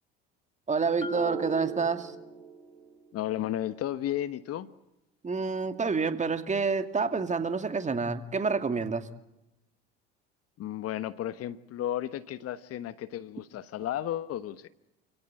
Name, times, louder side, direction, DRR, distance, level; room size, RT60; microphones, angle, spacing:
voice 1, 0.7-2.1 5.2-9.1, right 4 dB, 25° right, 2.4 m, -28 dB
Marimba xylophone, 1.0-2.8, right 2 dB, 15° left, 4.5 m, -38 dB
Drum, 1.1-3.7, right 9 dB, 80° right, 3.5 m, -44 dB
voice 2, 3.1-4.7 10.6-14.7, left 12 dB, 50° left, 1.3 m, -33 dB
28.5 x 17.0 x 9.2 m
hypercardioid pair, 75°, 31 cm